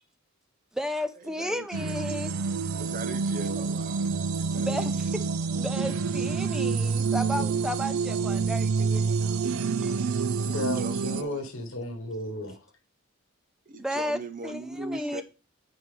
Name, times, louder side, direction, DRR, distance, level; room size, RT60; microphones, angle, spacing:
voice 1, 0.7-2.3 4.6-5.2 5.5-9.4 9.8-9.9 13.8-15.2, equal, 5° right, 0.5 m, -33 dB
voice 2, 1.2-2.0 2.7-5.0 7.1-7.6 10.5-11.4 13.7-15.2, right 2 dB, 40° right, 0.9 m, -40 dB
sound 1, 1.7-11.2, right 5 dB, 90° right, 0.6 m, -28 dB
voice 3, 10.5-12.6, left 2 dB, 75° left, 1.4 m, -34 dB
9.7 x 4.7 x 3.8 m
head